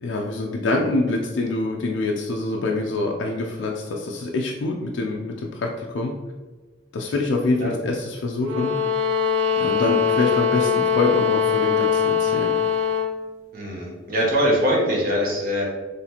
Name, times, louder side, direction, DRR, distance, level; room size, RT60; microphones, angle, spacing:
voice 1, 0.0-6.1 6.9-8.7 9.6-12.5, left 2 dB, 85° left, 0 dB, 0.4 m, -25 dB
sound 1, 8.4-13.2, left 6 dB, 85° right, 0.4 m, -21 dB
voice 2, 13.5-15.7, equal, 50° right, -2 dB, 1.0 m, -22 dB
4.0 x 3.2 x 2.9 m, 1.3 s
head